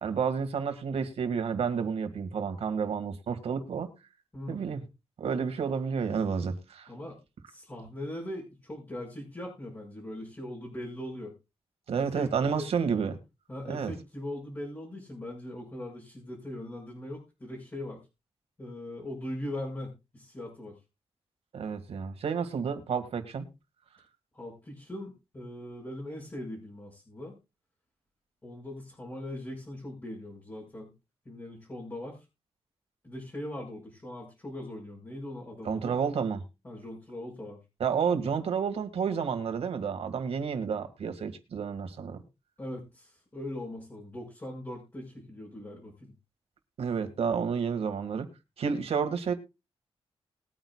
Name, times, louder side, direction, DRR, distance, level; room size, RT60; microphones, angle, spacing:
voice 1, 0.0-3.9 4.5-4.8 5.2-6.9 11.9-13.2 13.7-13.9 21.5-23.4 35.6-36.4 37.8-42.2 46.8-48.3 48.6-49.3, right 6 dB, 80° right, 2.0 m, -30 dB
voice 2, 4.3-4.6 6.9-7.2 7.5-11.3 12.0-12.7 13.5-18.0 18.6-20.8 24.3-27.3 28.4-30.9 31.3-32.2 33.0-36.0 36.6-37.6 42.6-46.1, left 1 dB, 25° left, 5.6 m, -40 dB
21.0 x 9.1 x 2.4 m
wide cardioid pair, 130°, 10 cm